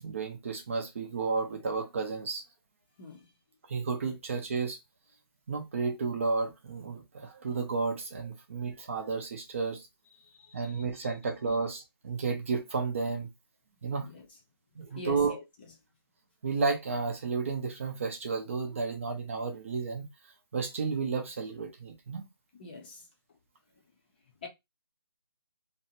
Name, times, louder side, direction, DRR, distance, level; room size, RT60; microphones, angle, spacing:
voice 1, 0.0-2.4 3.7-4.8 5.5-9.9 10.5-13.3 13.8-14.1 14.8-15.3 16.4-20.0 20.5-22.2, right 4 dB, 30° right, 0.5 m, -32 dB
voice 2, 10.2-10.8 14.0-14.3 14.9-15.4 22.6-23.1 24.4-24.5, left 3 dB, 20° left, 0.5 m, -44 dB
2.5 x 2.1 x 2.7 m
figure-of-eight pair, 160°, 13 cm